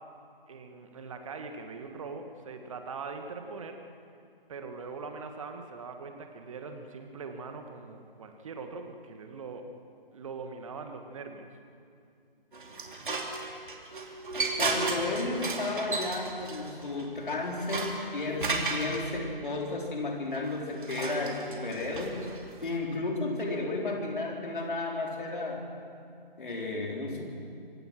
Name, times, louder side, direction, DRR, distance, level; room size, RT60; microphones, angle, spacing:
voice 1, 0.5-3.8 4.5-9.7 10.1-11.5, right 4 dB, 35° right, 5 dB, 1.7 m, -41 dB
sound 1, 12.5-19.0 20.3-22.7, right 3 dB, 60° right, 3.0 m, -34 dB
voice 2, 14.6-22.2 22.6-25.6 26.4-27.3, left 2 dB, 60° left, 0 dB, 4.3 m, -33 dB
24.5 x 17.0 x 6.3 m, 2.4 s
figure-of-eight pair, 150°, 29 cm